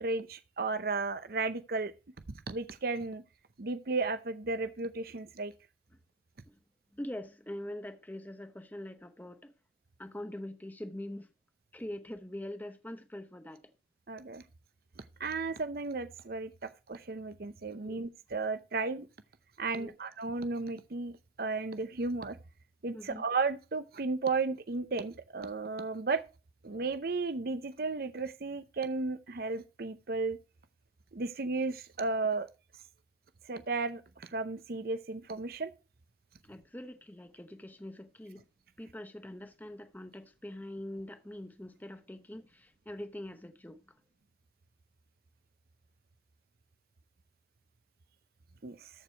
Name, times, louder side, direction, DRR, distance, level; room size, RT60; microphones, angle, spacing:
voice 1, 0.0-1.9 2.5-3.2 3.6-5.5 14.1-14.4 15.2-19.1 19.6-21.1 21.4-22.4 22.8-26.2 26.6-30.4 31.1-32.5 33.5-35.7 48.6-48.9, right 3 dB, 55° right, 0.7 m, -34 dB
voice 2, 6.9-9.5 10.0-11.3 11.7-13.6 17.8-18.0 19.8-19.9 22.9-23.2 36.4-38.4 38.8-43.8, left 1 dB, 10° left, 0.8 m, -43 dB
14.0 x 4.8 x 4.5 m
head